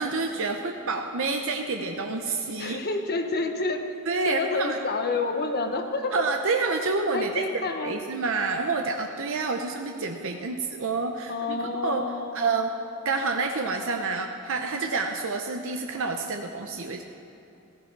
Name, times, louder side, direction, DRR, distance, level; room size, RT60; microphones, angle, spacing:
voice 1, 0.0-2.8 4.1-4.8 6.1-7.4 7.8-12.0 12.3-12.7 13.0-17.0, right 3 dB, 65° right, 3 dB, 0.8 m, -28 dB
voice 2, 2.6-3.8 4.3-6.3 7.1-8.0 11.3-12.5, left 3 dB, 45° left, 5 dB, 1.1 m, -29 dB
15.5 x 15.5 x 4.7 m, 3.0 s
head